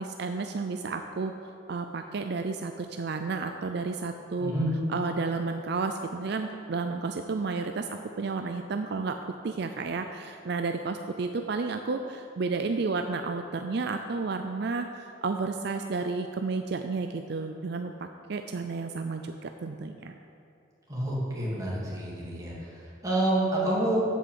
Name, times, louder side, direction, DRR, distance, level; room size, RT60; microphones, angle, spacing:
voice 1, 0.0-4.5 4.9-9.2 9.4-20.1, right 4 dB, 60° right, 6 dB, 0.5 m, -32 dB
voice 2, 20.9-24.0, right 1 dB, 20° right, -6 dB, 2.6 m, -28 dB
8.1 x 7.7 x 7.7 m, 2.6 s
head